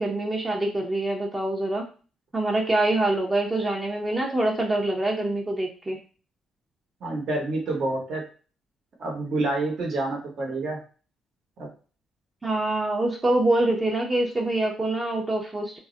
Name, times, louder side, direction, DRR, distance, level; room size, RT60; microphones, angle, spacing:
voice 1, 0.0-1.9 2.3-6.0 12.4-15.8, right 2 dB, 20° right, 0 dB, 0.6 m, -25 dB
voice 2, 7.0-8.2 9.0-10.8 11.6-11.7, right 2 dB, 60° right, -1 dB, 0.9 m, -28 dB
2.3 x 2.0 x 3.7 m, 0.37 s
cardioid pair, 90°, 0 cm